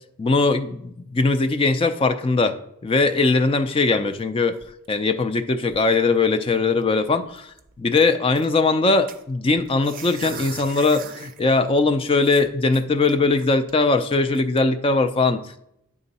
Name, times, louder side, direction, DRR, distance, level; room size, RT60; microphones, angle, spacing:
voice 1, 0.2-2.6 2.8-4.6 4.9-15.6, left 3 dB, 25° left, 9 dB, 0.3 m, -20 dB
sound 1, 4.0-5.4 5.7-6.2 6.5-6.6 6.8-7.0 7.3-8.5 9.1-11.4 11.8-11.9 12.2-13.7 14.1-14.4, right 6 dB, 40° right, 0.5 m, -40 dB
9.7 x 3.7 x 4.1 m, 0.78 s
head